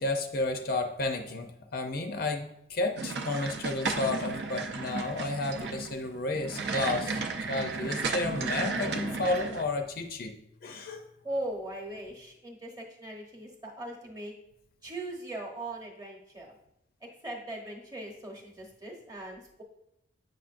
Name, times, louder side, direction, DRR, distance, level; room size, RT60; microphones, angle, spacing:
voice 1, 0.0-7.2 7.5-10.3 10.6-11.0, left 2 dB, 50° left, 5 dB, 0.5 m, -32 dB
sound 1, 3.0-9.6, right 4 dB, 55° right, 0.6 m, -34 dB
voice 2, 11.2-14.3 14.8-16.6 17.0-19.6, right 1 dB, 20° right, 0 dB, 1.0 m, -39 dB
7.9 x 5.7 x 2.5 m, 0.80 s
head